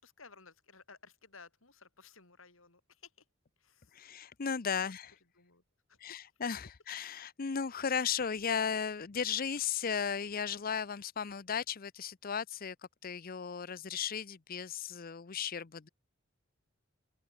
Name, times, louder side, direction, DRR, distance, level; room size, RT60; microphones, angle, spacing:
voice 1, 0.0-3.1 3.6-4.2 4.7-5.0 5.4-5.6 5.9-6.2, left 4 dB, 85° left, 7.0 m, -57 dB
voice 2, 3.9-5.1 6.0-12.8 13.0-15.9, left 7 dB, 45° left, 0.6 m, -35 dB
open air
head